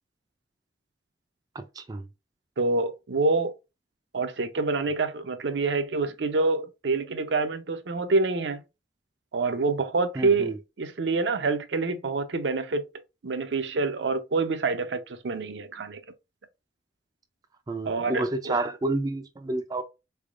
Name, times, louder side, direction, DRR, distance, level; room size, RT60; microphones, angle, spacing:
voice 1, 1.5-2.1 10.2-10.6 17.7-19.8, right 2 dB, 20° right, 0.3 m, -30 dB
voice 2, 2.6-3.5 4.1-8.6 9.3-12.9 13.2-16.0 17.8-18.6, right 3 dB, 75° right, 0.6 m, -27 dB
3.7 x 3.4 x 2.4 m
head